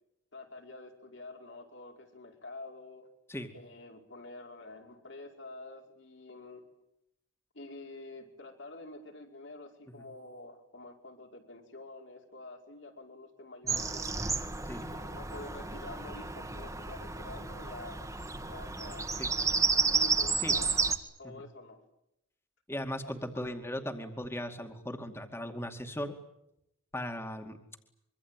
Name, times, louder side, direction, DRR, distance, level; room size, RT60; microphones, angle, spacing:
voice 1, 0.3-3.1 3.5-6.6 7.5-14.1 14.9-18.1 18.4-20.7 21.2-21.8 23.0-23.1, left 2 dB, 65° left, 2 dB, 5.0 m, -48 dB
Bird vocalization bird call bird song, 13.7-21.0, right 4 dB, 15° right, 1.8 m, -31 dB
voice 2, 14.6-14.9 19.2-19.3 20.4-20.6 21.2-21.4 22.7-26.1 26.9-27.6, left 1 dB, 10° left, 6 dB, 2.4 m, -38 dB
25.5 x 24.5 x 9.1 m, 0.82 s
head